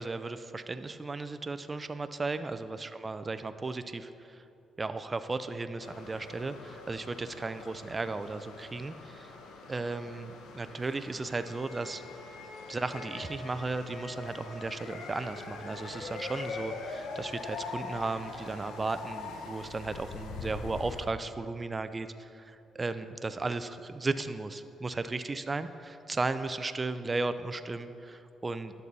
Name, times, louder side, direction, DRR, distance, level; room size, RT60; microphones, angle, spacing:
voice 1, 0.0-4.4 4.8-9.3 9.7-12.0 12.7-28.7, right 3 dB, 25° right, 11 dB, 0.4 m, -35 dB
sound 1, 5.8-21.1, left 4 dB, 85° left, 0.8 m, -43 dB
11.0 x 6.8 x 4.1 m, 2.7 s
cardioid pair, 90°, 0 cm